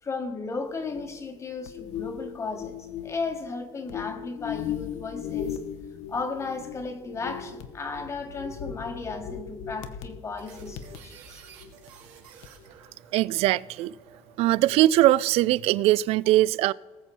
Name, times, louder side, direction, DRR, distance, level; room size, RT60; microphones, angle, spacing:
voice 1, 0.0-5.6 6.1-11.4 16.7-16.8, left 4 dB, 25° left, 1.2 m, -35 dB
sound 1, 0.7-12.1 12.4-12.7, left 9 dB, 70° left, 1.0 m, -38 dB
sound 2, 10.4-16.2, right 7 dB, 80° right, 2.1 m, -52 dB
voice 2, 13.1-13.9 14.4-16.7, right 15 dB, 60° right, 0.4 m, -21 dB
19.0 x 7.1 x 4.2 m
cardioid pair, 140°, 12 cm